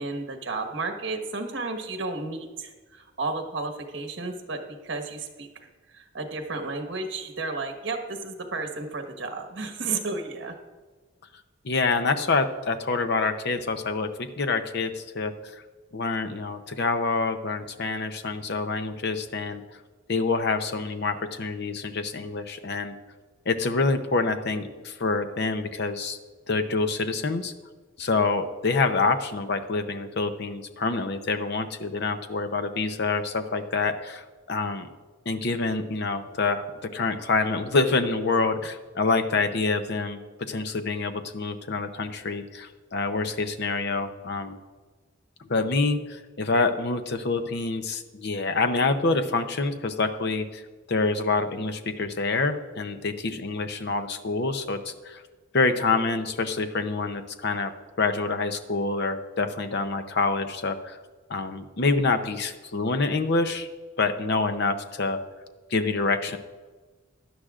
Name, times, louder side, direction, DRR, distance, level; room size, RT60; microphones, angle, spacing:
voice 1, 0.0-5.5 5.9-10.5, right 3 dB, 65° right, 5 dB, 1.4 m, -32 dB
voice 2, 11.6-15.6 15.9-19.6 20.1-23.0 23.5-26.2 26.5-27.5 28.0-34.9 35.3-44.6 45.5-50.6 50.9-55.2 55.5-57.7 58.0-61.0 61.3-63.7 64.0-65.2 65.7-66.4, left 3 dB, 60° left, 9 dB, 0.7 m, -26 dB
16.5 x 11.0 x 2.5 m, 1.3 s
head